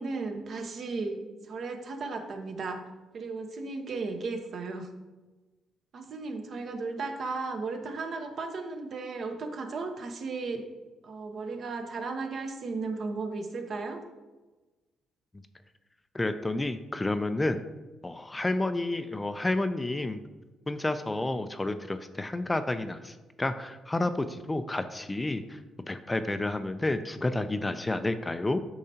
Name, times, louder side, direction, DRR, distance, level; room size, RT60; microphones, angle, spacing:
voice 1, 0.0-2.8 3.1-4.9 5.9-10.6 11.0-14.0, right 3 dB, 55° right, 4 dB, 0.9 m, -35 dB
voice 2, 16.1-17.6 18.0-20.2 20.7-25.6 25.9-28.6, left 2 dB, 15° left, 10 dB, 0.3 m, -30 dB
8.5 x 5.4 x 2.8 m, 1.2 s
cardioid pair, 90°, 0 cm